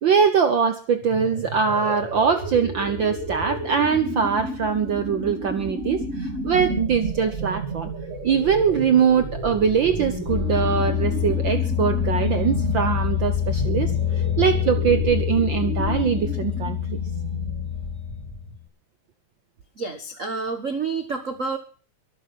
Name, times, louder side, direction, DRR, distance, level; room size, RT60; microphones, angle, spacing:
voice 1, 0.0-7.9 8.2-13.9 14.4-17.0, right 6 dB, 80° right, 9 dB, 1.0 m, -22 dB
sound 1, 1.0-18.6, right 2 dB, 25° right, 2.7 m, -32 dB
sound 2, 9.8-18.6, left 10 dB, 30° left, 5.9 m, -26 dB
voice 2, 19.8-21.6, right 4 dB, 50° right, 6 dB, 0.9 m, -29 dB
23.5 x 8.3 x 5.7 m, 0.39 s
omnidirectional pair, 3.6 m